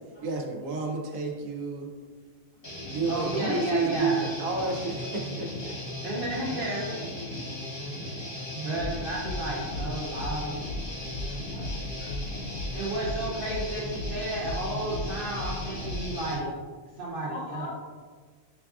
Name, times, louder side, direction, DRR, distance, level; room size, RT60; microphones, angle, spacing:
voice 1, 0.2-1.9 2.9-5.7, right 3 dB, 75° right, 1 dB, 1.0 m, -30 dB
Guitar, 2.6-16.3, left 1 dB, 25° left, 0.6 m, -37 dB
voice 2, 3.1-4.3 6.0-7.5 7.9-8.0 8.5-10.6 12.7-16.5 16.9-17.7, right 1 dB, 60° right, -5 dB, 0.6 m, -32 dB
sound 1, 8.8-13.7 14.0-16.2, left 2 dB, 90° left, 1.0 m, -36 dB
voice 3, 11.5-12.5 17.3-17.7, left 2 dB, 60° left, -4 dB, 1.2 m, -43 dB
5.9 x 2.3 x 2.3 m, 1.5 s
omnidirectional pair, 1.4 m